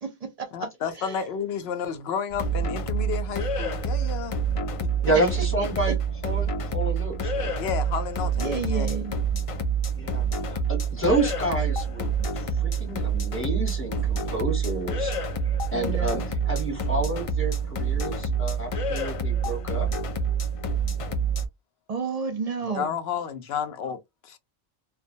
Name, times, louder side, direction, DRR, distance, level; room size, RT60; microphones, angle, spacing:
voice 1, 0.0-0.7 1.0-1.2 5.1-5.2 5.9-6.0 8.4-9.2 15.7-16.3 21.9-23.0, right 4 dB, 45° right, 0.6 m, -31 dB
voice 2, 0.5-4.4 7.6-8.9 22.7-24.4, left 7 dB, 80° left, 0.8 m, -31 dB
sound 1, 2.3-21.5, right 4 dB, 55° left, 0.3 m, -27 dB
voice 3, 5.0-6.0 6.2-7.5 10.0-12.1 12.6-15.1 15.7-19.9, right 2 dB, 15° left, 0.9 m, -29 dB
2.2 x 2.2 x 2.6 m
omnidirectional pair, 1.0 m